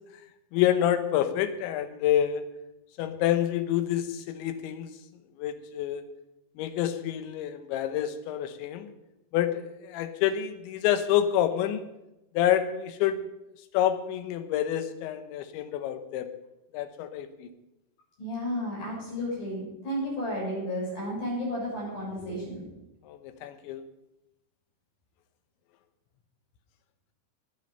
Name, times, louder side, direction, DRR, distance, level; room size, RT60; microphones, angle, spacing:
voice 1, 0.5-2.4 3.0-4.9 5.4-6.0 6.6-8.9 9.3-11.9 12.3-13.3 13.7-16.3 16.7-17.5 23.1-23.8, left 11 dB, 80° left, 10 dB, 3.3 m, -28 dB
voice 2, 18.2-22.6, equal, 55° left, -4 dB, 8.5 m, -32 dB
20.5 x 7.7 x 5.5 m, 0.93 s
omnidirectional pair, 5.2 m